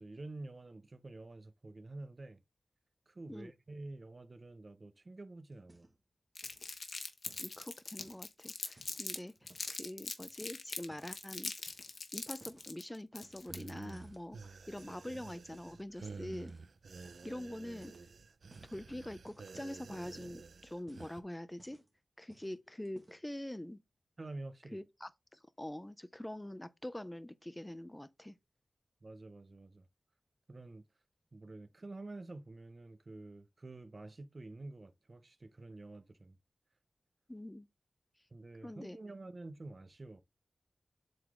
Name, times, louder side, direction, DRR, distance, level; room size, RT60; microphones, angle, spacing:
voice 1, 0.0-2.4 3.1-5.9 24.2-24.8 29.0-29.8 30.5-30.9 31.3-36.4 38.3-40.2, right 2 dB, 40° right, 0.7 m, -48 dB
sound 1, 5.5-6.1 6.4-6.8 7.3-9.8 10.2-11.2 11.6-12.7 13.2-13.7 13.9-15.8 16.3-16.6 17.0-17.3 17.7-18.8 19.2-19.5 19.9-20.4 20.7-22.0 22.3-22.6 22.8-23.3, right 1 dB, 20° right, 1.9 m, -62 dB
Crumpling crinkling, 6.4-9.2 9.5-13.9, left 4 dB, 60° left, 1.3 m, -42 dB
voice 2, 7.4-11.7 12.1-16.5 17.2-17.9 18.6-21.8 22.2-23.8 24.7-28.4 37.3-37.7 38.6-39.0, left 1 dB, 10° left, 0.5 m, -45 dB
sound 2, 13.4-21.2, right 4 dB, 75° right, 0.7 m, -50 dB
7.8 x 3.9 x 3.6 m
wide cardioid pair, 90°, 0 cm